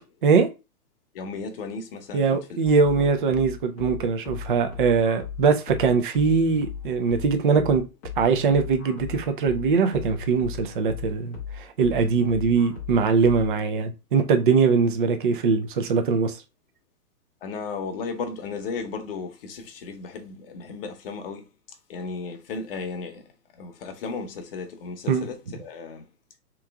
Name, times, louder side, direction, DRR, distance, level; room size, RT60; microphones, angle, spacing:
voice 1, 1.1-2.6 2.9-3.1 5.0-5.1 7.1-7.2 17.4-21.5 21.9-26.1, left 4 dB, 35° left, 0.9 m, -35 dB
voice 2, 2.1-7.8 8.2-16.4 25.1-25.3, right 5 dB, 35° right, 0.5 m, -22 dB
sound 1, 2.6-13.7, left 6 dB, 10° left, 0.6 m, -37 dB
3.6 x 3.1 x 3.4 m
hypercardioid pair, 155°, 47 cm